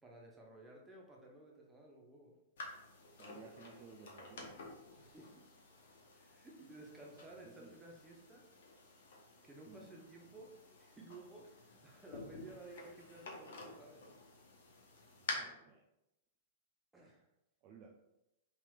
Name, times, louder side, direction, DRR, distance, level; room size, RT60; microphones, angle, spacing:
voice 1, 0.0-2.3 4.9-5.5 6.1-8.4 9.4-14.0 16.9-17.3, right 2 dB, 15° right, -1 dB, 0.7 m, -55 dB
sound 1, 2.6-15.3, left 3 dB, 60° left, 0.6 m, -51 dB
voice 2, 3.2-4.5 7.2-7.7 9.7-9.8 15.2-15.8 17.6-17.9, right 5 dB, 40° right, 1 dB, 0.3 m, -57 dB
3.2 x 2.9 x 2.3 m, 0.90 s
figure-of-eight pair, 100°, 0 cm